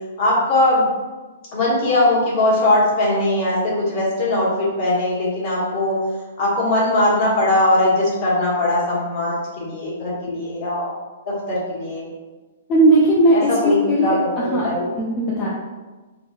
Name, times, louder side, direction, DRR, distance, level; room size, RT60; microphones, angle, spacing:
voice 1, 0.2-0.8 1.5-6.0 6.4-10.9 11.2-12.1 13.3-14.9, left 1 dB, 45° left, -6 dB, 1.2 m, -20 dB
voice 2, 12.7-13.4 13.6-14.2 14.5-14.7 15.0-15.5, right 1 dB, 25° left, -6 dB, 0.5 m, -16 dB
3.3 x 2.2 x 2.4 m, 1.2 s
hypercardioid pair, 140°, 0 cm